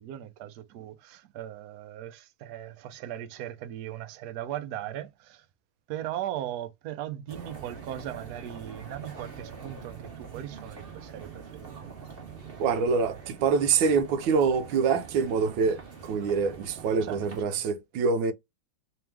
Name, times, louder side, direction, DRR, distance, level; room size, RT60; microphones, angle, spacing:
voice 1, 0.0-5.5 5.9-11.9 17.0-17.6, right 12 dB, 65° right, 1.1 m, -38 dB
sound 1, 7.3-17.4, right 6 dB, 35° right, 1.2 m, -44 dB
voice 2, 12.6-18.3, right 5 dB, 85° right, 1.5 m, -25 dB
3.5 x 2.9 x 3.4 m
omnidirectional pair, 2.1 m